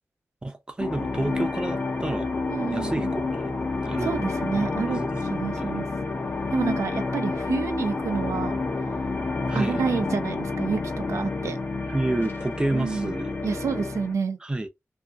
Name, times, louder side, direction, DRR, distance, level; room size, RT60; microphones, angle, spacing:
voice 1, 0.4-2.3 2.7-3.5 3.8-4.2 4.6-5.2 5.6-5.8 9.5-9.8 11.9-13.3 14.4-14.7, right 2 dB, 20° right, 0.5 m, -29 dB
sound 1, 0.8-14.1, left 3 dB, 45° left, 0.6 m, -29 dB
voice 2, 2.5-3.1 4.0-5.0 5.3-5.9 6.5-8.6 9.5-11.6 12.7-13.1 13.4-14.4, right 5 dB, 90° right, 0.4 m, -29 dB
2.6 x 2.6 x 2.3 m
wide cardioid pair, 130°, 5 cm